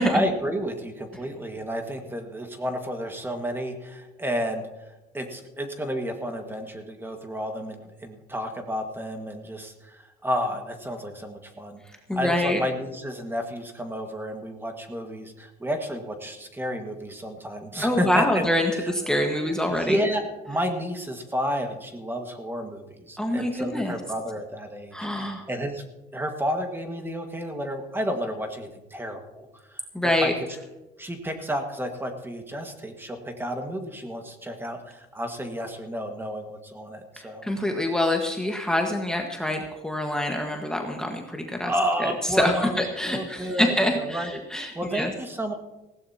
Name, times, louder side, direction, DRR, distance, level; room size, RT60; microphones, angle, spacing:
voice 1, 0.1-4.7 5.1-11.8 12.1-18.9 19.8-25.8 26.1-30.3 31.0-37.5 41.6-44.4 44.8-45.5, equal, 15° right, 5 dB, 1.7 m, -31 dB
voice 2, 12.1-12.6 17.8-20.0 23.2-23.9 24.9-25.5 29.9-30.3 37.2-41.7 42.0-42.1 42.4-45.1, left 1 dB, 5° left, 1 dB, 1.5 m, -25 dB
19.0 x 16.0 x 2.9 m, 1.0 s
cardioid pair, 110°, 17 cm